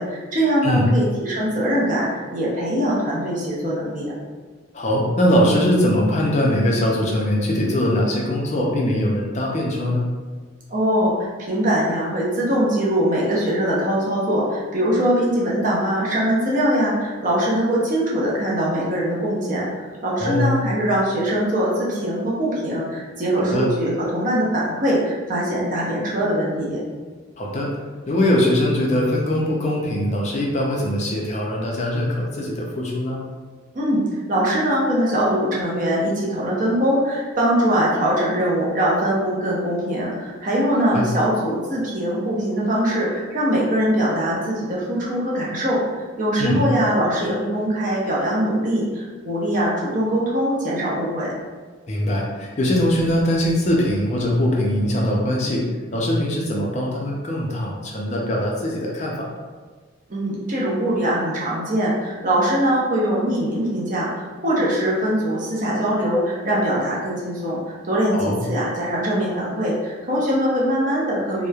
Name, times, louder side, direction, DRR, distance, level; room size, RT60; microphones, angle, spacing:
voice 1, 0.0-4.1 10.7-19.6 20.0-26.8 33.7-34.0 34.3-45.8 46.2-51.3 60.1-67.6 67.9-71.5, equal, 40° right, -5 dB, 0.6 m, -22 dB
voice 2, 4.7-10.1 20.2-20.7 23.5-23.7 27.4-27.7 28.1-33.2 40.9-41.1 46.4-46.7 51.9-59.3 68.1-68.4, left 1 dB, 35° left, -2 dB, 0.4 m, -21 dB
2.9 x 2.0 x 2.3 m, 1.4 s
head